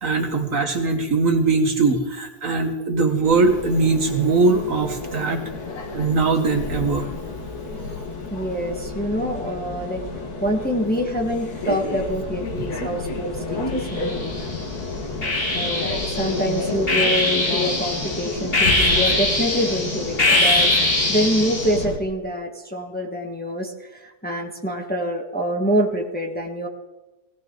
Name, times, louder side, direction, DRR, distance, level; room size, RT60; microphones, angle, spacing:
voice 1, 0.0-5.4 5.9-7.1, right 3 dB, 55° right, 4 dB, 1.7 m, -20 dB
sound 1, 3.2-22.0, left 3 dB, 75° left, 2.2 m, -30 dB
voice 2, 8.3-10.0 10.4-14.3 15.5-20.7 21.1-26.7, equal, 5° left, 1 dB, 1.5 m, -26 dB
sound 2, 13.8-14.6 15.2-21.8, left 2 dB, 35° left, 2.6 m, -22 dB
17.5 x 17.5 x 3.9 m, 1.1 s
omnidirectional pair, 1.7 m